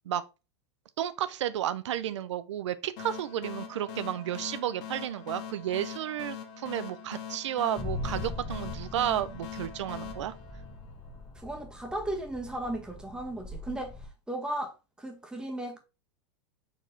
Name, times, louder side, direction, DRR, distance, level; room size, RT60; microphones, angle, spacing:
voice 1, 1.0-10.3, right 11 dB, 90° right, 0.4 m, -32 dB
sound 1, 3.0-11.3, left 8 dB, 55° left, 0.9 m, -43 dB
sound 2, 7.8-14.1, left 2 dB, 20° left, 0.8 m, -41 dB
voice 2, 11.3-14.0 14.3-15.8, right 1 dB, 5° right, 1.2 m, -36 dB
4.6 x 3.1 x 3.7 m
hypercardioid pair, 120°, 15 cm